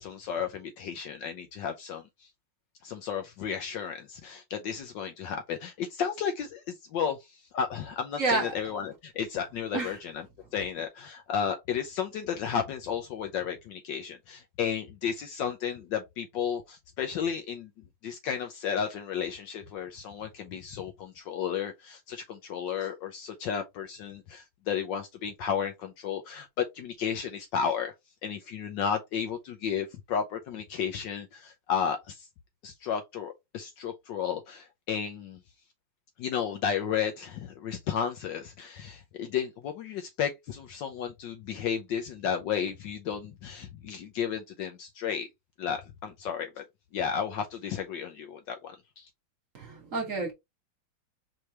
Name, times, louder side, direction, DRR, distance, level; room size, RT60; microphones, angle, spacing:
voice 1, 0.0-2.3 2.8-10.3 10.5-17.7 18.0-27.9 28.2-32.3 32.6-35.4 36.2-45.3 45.6-46.6 46.9-49.1, left 7 dB, 70° left, 1.1 m, -33 dB
voice 2, 8.2-8.5 9.7-9.9 49.5-50.3, right 3 dB, 45° right, 1.4 m, -29 dB
4.7 x 3.2 x 2.9 m
omnidirectional pair, 2.4 m